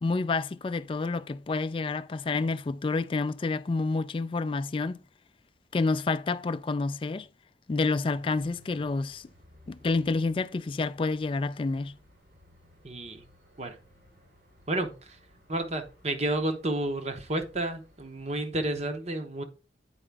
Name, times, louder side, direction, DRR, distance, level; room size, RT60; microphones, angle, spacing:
voice 1, 0.0-5.0 5.7-7.3 7.7-9.3 9.7-11.9, left 3 dB, 30° left, 0.3 m, -29 dB
sound 1, 8.1-18.5, left 1 dB, 70° right, 3.8 m, -59 dB
voice 2, 12.8-13.2 13.6-13.8 14.7-15.2 15.5-19.4, right 1 dB, 35° right, 0.9 m, -31 dB
8.7 x 4.9 x 3.4 m
head